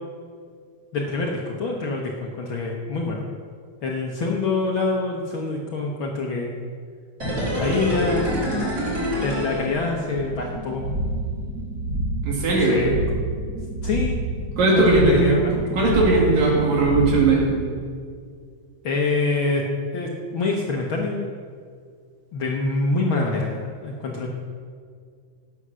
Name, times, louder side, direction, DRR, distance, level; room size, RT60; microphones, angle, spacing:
voice 1, 0.9-3.3 3.8-6.6 7.6-8.3 9.2-10.9 12.6-13.0 13.8-14.2 14.7-15.8 18.8-19.6 19.9-21.3 22.3-24.3, left 3 dB, 75° left, -1 dB, 1.1 m, -25 dB
sound 1, 7.2-10.3 10.6-10.7, equal, 25° right, 2.8 m, -26 dB
sound 2, 10.2-17.5, right 1 dB, 40° right, 1.3 m, -28 dB
voice 2, 12.2-12.8 14.6-15.4 15.7-17.5, right 2 dB, 80° right, -3 dB, 4.4 m, -18 dB
17.0 x 6.9 x 6.2 m, 2.1 s
omnidirectional pair, 3.9 m